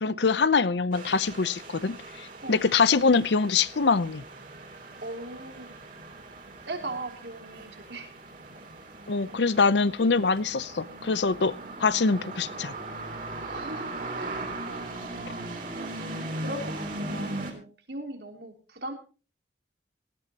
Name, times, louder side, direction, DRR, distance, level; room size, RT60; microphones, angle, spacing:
voice 1, 0.0-4.2 9.1-11.5 11.8-12.7, left 4 dB, 75° left, 17 dB, 0.7 m, -24 dB
sound 1, 0.9-17.5, right 2 dB, 45° right, 3.5 m, -39 dB
voice 2, 5.0-5.8 6.6-8.1 9.3-9.9 13.3-15.2 15.5-18.9, right 2 dB, 65° right, 4 dB, 3.3 m, -40 dB
18.5 x 14.5 x 2.9 m, 0.35 s
head